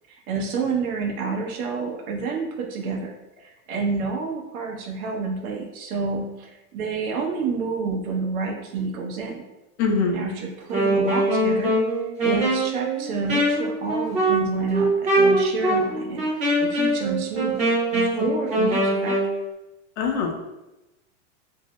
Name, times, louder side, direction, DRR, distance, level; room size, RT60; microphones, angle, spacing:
voice 1, 0.3-3.1 3.4-9.4 10.1-11.7 12.2-19.2, right 4 dB, 85° right, 0 dB, 0.8 m, -29 dB
voice 2, 9.8-10.2 20.0-20.4, left 5 dB, 55° left, 2 dB, 0.6 m, -23 dB
Wind instrument woodwind instrument, 10.6-19.3, right 1 dB, 15° right, 0.6 m, -22 dB
2.6 x 2.1 x 2.9 m, 0.98 s
supercardioid pair, 165°, 41 cm